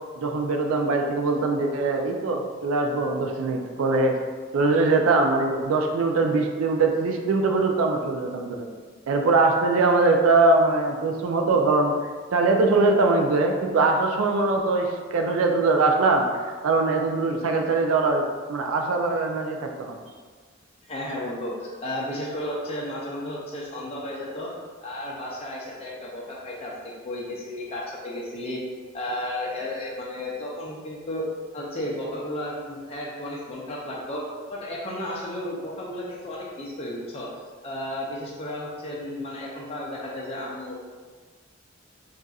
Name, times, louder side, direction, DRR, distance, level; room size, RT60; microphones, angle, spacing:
voice 1, 0.2-4.2 4.5-8.7 9.1-11.9 12.3-16.2 16.6-20.0, right 3 dB, 85° right, 3 dB, 0.4 m, -22 dB
voice 2, 20.9-24.5 24.8-26.8 27.0-28.6 28.9-31.3 31.5-34.2 34.5-37.3 37.6-40.8, left 1 dB, 30° left, -4 dB, 0.4 m, -33 dB
4.0 x 2.4 x 2.3 m, 1.5 s
head